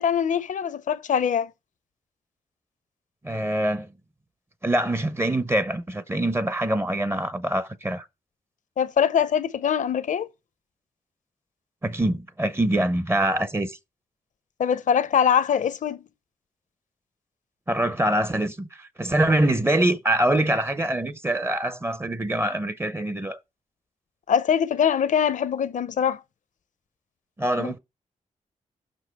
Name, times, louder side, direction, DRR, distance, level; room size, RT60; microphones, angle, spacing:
voice 1, 0.0-1.5 8.8-10.3 14.6-16.0 24.3-26.2 27.6-27.7, left 8 dB, 65° left, 0.6 m, -23 dB
voice 2, 3.2-3.9 4.6-8.0 11.8-13.8 17.7-23.4 27.4-27.8, right 1 dB, 15° right, 0.6 m, -24 dB
5.9 x 5.2 x 4.5 m
wide cardioid pair, 105°, 14 cm